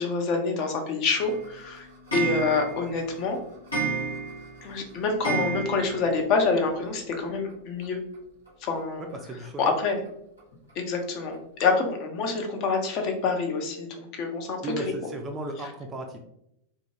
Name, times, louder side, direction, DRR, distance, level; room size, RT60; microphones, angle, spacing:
voice 1, 0.0-1.9 2.1-3.4 4.6-8.0 8.6-9.1 9.6-10.0 10.8-14.8, left 4 dB, 40° left, 3 dB, 0.5 m, -27 dB
Clock, 1.1-6.2 6.5-6.6 6.9-7.0 7.2-7.3 8.5-8.6 9.1-9.2 9.7-9.8 10.4-10.5 11.0-11.1 11.7-11.8, right 4 dB, 85° left, 1.2 m, -32 dB
voice 2, 9.0-9.7 14.6-16.2, right 2 dB, 20° right, 3 dB, 0.3 m, -35 dB
2.5 x 2.2 x 2.7 m, 0.78 s
figure-of-eight pair, 90°, 0 cm